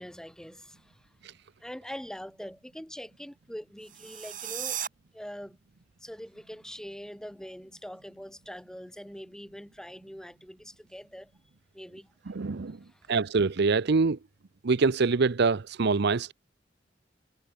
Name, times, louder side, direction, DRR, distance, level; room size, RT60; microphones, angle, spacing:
voice 1, 0.0-1.1 1.6-4.8 5.1-5.6 6.0-11.3 11.7-12.1 12.7-13.1, equal, 5° left, 4.2 m, -43 dB
sound 1, 3.8-4.9, right 11 dB, 45° right, 4.0 m, -35 dB
voice 2, 12.3-12.8 13.1-14.2 14.6-16.3, right 4 dB, 60° right, 0.6 m, -25 dB
head